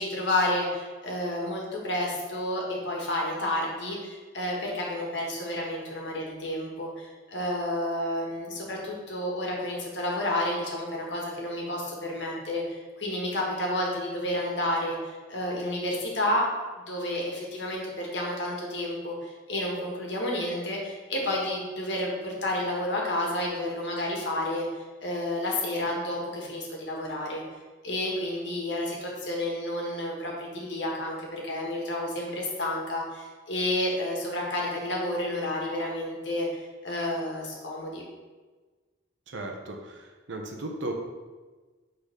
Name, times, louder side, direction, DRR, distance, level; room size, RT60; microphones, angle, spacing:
voice 1, 0.0-16.4 16.9-27.4 27.8-38.0, left 1 dB, 70° left, -2 dB, 1.7 m, -30 dB
voice 2, 39.3-40.9, right 2 dB, 80° right, 3 dB, 1.0 m, -36 dB
6.6 x 4.0 x 5.1 m, 1.3 s
head